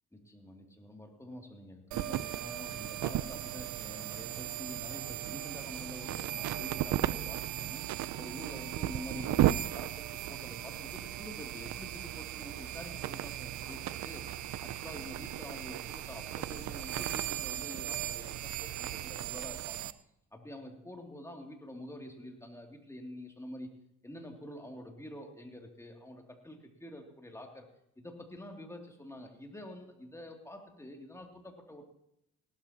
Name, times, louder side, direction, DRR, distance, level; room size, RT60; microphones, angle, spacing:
voice 1, 0.1-7.8 8.2-9.4 9.7-19.9 20.3-27.7 28.0-31.9, left 1 dB, 10° left, 2 dB, 2.7 m, -47 dB
sound 1, 1.9-19.9, right 13 dB, 70° right, 0.6 m, -36 dB
Walk footsteps, 11.2-17.3, right 1 dB, 25° right, 5.2 m, -60 dB
18.0 x 13.0 x 2.9 m, 0.77 s
cardioid pair, 90°, 30 cm